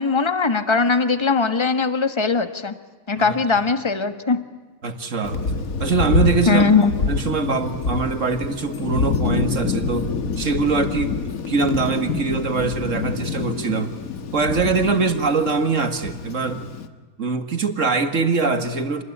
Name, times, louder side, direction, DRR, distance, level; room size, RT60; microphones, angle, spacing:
voice 1, 0.0-2.7 3.1-4.4 6.5-6.9, left 4 dB, 20° left, 10 dB, 1.4 m, -20 dB
voice 2, 4.8-6.7 7.1-10.1 10.4-11.2 11.5-13.9 14.3-16.6 17.2-19.0, right 4 dB, 60° right, 8 dB, 2.3 m, -23 dB
Thunder, 5.2-16.9, left 4 dB, 80° left, 2.0 m, -26 dB
28.5 x 20.5 x 10.0 m, 1.3 s
omnidirectional pair, 1.5 m